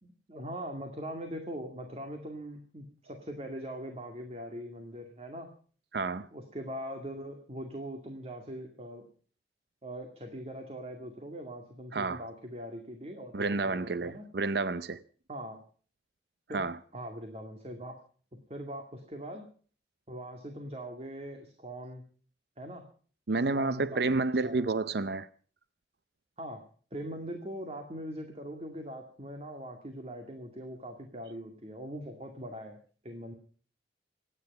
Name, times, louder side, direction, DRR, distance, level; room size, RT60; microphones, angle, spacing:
voice 1, 0.0-5.5 6.3-9.1 9.8-14.3 15.3-15.6 16.5-18.0 18.3-19.4 20.1-22.0 22.6-22.9 23.5-24.7 26.4-26.6 26.9-32.8 33.0-33.3, equal, 35° right, 2.2 m, -41 dB
voice 2, 5.9-6.3 11.9-12.3 13.3-15.0 16.5-16.8 23.3-25.3, right 3 dB, 65° right, 0.6 m, -30 dB
25.5 x 10.0 x 5.4 m
head